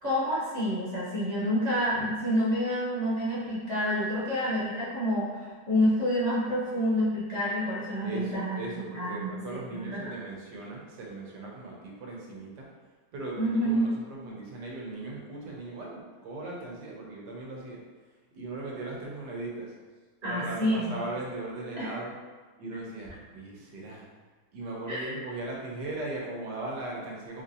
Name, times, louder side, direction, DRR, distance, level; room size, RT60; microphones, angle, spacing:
voice 1, 0.0-8.6 8.9-10.1 13.4-13.9 20.2-20.9 21.8-21.9 24.9-25.1, equal, 30° right, -10 dB, 1.0 m, -28 dB
voice 2, 8.0-12.7 13.1-17.8 18.3-19.7 20.2-22.1 22.6-24.1 24.5-27.4, right 2 dB, 90° right, -3 dB, 1.4 m, -38 dB
3.9 x 2.6 x 2.7 m, 1.4 s
omnidirectional pair, 1.8 m